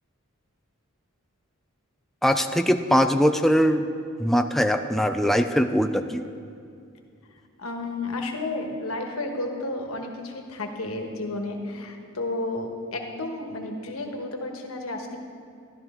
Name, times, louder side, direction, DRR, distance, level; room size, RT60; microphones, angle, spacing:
voice 1, 2.2-3.8 4.2-6.2, equal, ahead, 7 dB, 0.3 m, -21 dB
voice 2, 7.6-15.2, left 2 dB, 85° left, 3 dB, 1.3 m, -32 dB
12.5 x 12.0 x 3.6 m, 2.4 s
head